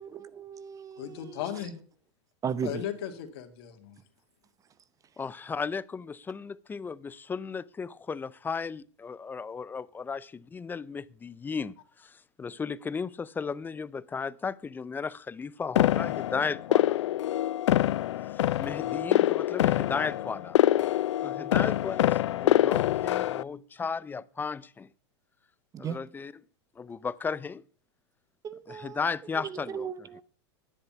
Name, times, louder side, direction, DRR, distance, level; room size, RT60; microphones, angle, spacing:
voice 1, 0.0-1.4 2.4-2.8 25.7-26.0 28.4-29.0 29.4-30.2, right 7 dB, 20° right, 0.8 m, -36 dB
voice 2, 1.0-1.8 2.6-4.0, left 10 dB, 60° left, 2.5 m, -36 dB
voice 3, 5.2-17.0 18.2-20.6 21.2-24.9 25.8-26.3 26.8-27.6 28.7-30.1, left 5 dB, 15° left, 0.4 m, -35 dB
sound 1, 15.8-23.4, left 13 dB, 85° left, 0.4 m, -25 dB
10.5 x 9.9 x 5.7 m
hypercardioid pair, 120°, 15 cm